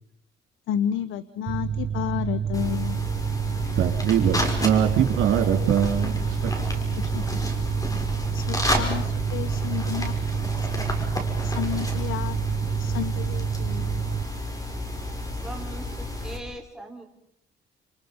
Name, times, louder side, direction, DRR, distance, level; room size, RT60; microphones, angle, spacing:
voice 1, 0.7-3.0 7.0-7.4 8.3-10.1 10.6-10.7 11.4-12.4 12.8-14.0, left 11 dB, 85° left, 14 dB, 1.1 m, -31 dB
Mechanical fan, 1.5-14.2, right 8 dB, 40° right, 1.0 m, -28 dB
sound 1, 2.5-16.4, left 1 dB, 15° left, 5.8 m, -31 dB
voice 2, 3.8-6.7, right 9 dB, 85° right, 6 dB, 3.6 m, -23 dB
voice 3, 15.4-17.1, right 1 dB, 5° right, 1 dB, 5.6 m, -40 dB
30.0 x 29.0 x 5.4 m, 0.77 s
cardioid pair, 90°, 20 cm